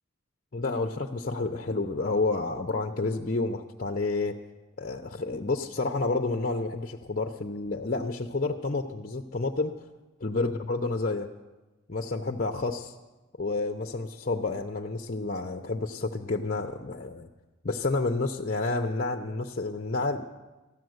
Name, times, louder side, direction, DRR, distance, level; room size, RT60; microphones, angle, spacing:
voice 1, 0.5-4.4 4.8-9.7 10.2-11.3 11.9-12.9 13.4-17.3 17.6-20.2, left 3 dB, 40° left, 4 dB, 0.7 m, -30 dB
13.5 x 11.5 x 7.9 m, 1.2 s
head